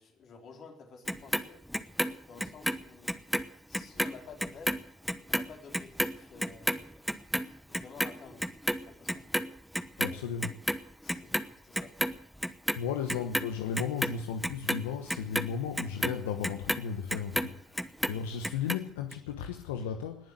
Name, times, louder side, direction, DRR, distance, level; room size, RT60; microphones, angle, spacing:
voice 1, 0.0-1.6 2.3-3.1 3.7-4.8 5.3-6.9 7.7-8.5 8.8-9.3 11.0-11.9, left 5 dB, 60° left, 3 dB, 3.9 m, -51 dB
Clock, 1.1-3.5 3.7-10.2 10.4-11.5 11.7-12.8 13.1-17.5 17.8-18.8 19.1-19.2, equal, ahead, 1.0 m, -31 dB
voice 2, 10.0-10.6 12.8-20.3, left 7 dB, 90° left, 6 dB, 1.0 m, -35 dB
20.0 x 7.5 x 9.3 m, 0.74 s
hypercardioid pair, 60°, 0 cm